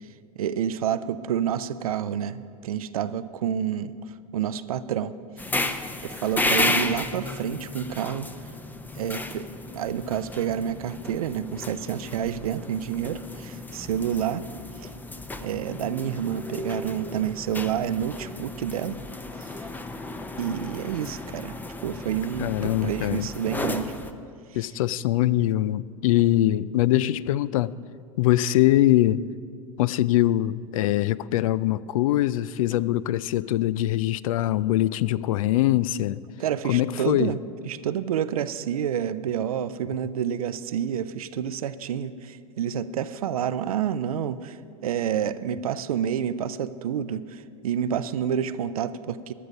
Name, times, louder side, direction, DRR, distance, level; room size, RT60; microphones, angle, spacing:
voice 1, 0.4-3.9 4.3-5.1 6.0-8.3 9.0-9.5 9.7-14.4 14.8-14.9 15.4-19.0 19.4-19.7 20.4-21.5 21.8-23.9 36.4-37.4 37.7-49.3, right 9 dB, 80° right, 13 dB, 0.5 m, -29 dB
sound 1, 5.4-24.1, left 2 dB, 10° left, 0.7 m, -33 dB
voice 2, 22.4-23.3 24.5-27.7 28.2-29.2 29.8-36.2 36.7-37.3, left 14 dB, 70° left, 19 dB, 0.4 m, -23 dB
15.5 x 10.5 x 5.3 m, 2.3 s
hypercardioid pair, 95°, 18 cm